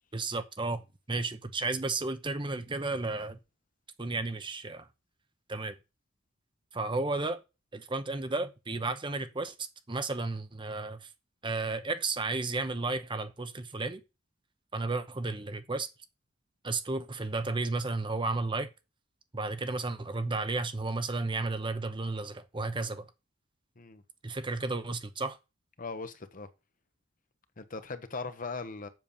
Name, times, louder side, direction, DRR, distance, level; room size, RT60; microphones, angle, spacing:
voice 1, 0.1-0.8 1.1-3.4 4.0-4.9 5.5-5.8 6.7-7.4 7.7-9.5 9.9-11.1 11.4-14.0 14.7-15.9 16.6-18.7 19.3-23.1 24.2-25.4, right 3 dB, 25° right, 0.8 m, -33 dB
voice 2, 25.8-26.5 27.6-28.9, left 4 dB, 45° left, 1.0 m, -39 dB
7.7 x 5.5 x 7.1 m
head